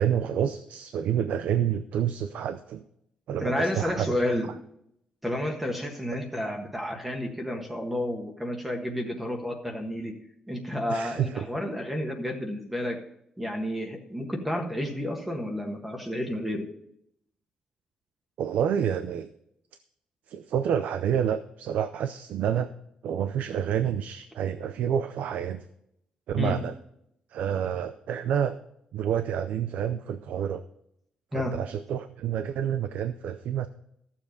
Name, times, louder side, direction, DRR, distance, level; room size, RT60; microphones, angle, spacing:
voice 1, 0.0-2.8 3.3-4.2 10.9-11.5 18.4-19.3 20.3-22.7 23.0-25.7 26.3-26.8 27.3-28.6 28.9-30.6 31.5-33.7, right 9 dB, 90° right, 11 dB, 0.5 m, -28 dB
voice 2, 3.4-4.5 5.2-10.1 10.5-13.0 13.4-16.6 26.4-26.6 31.3-31.5, left 1 dB, 5° right, 2 dB, 1.4 m, -30 dB
13.5 x 7.2 x 5.2 m, 0.75 s
wide cardioid pair, 160°, 3 cm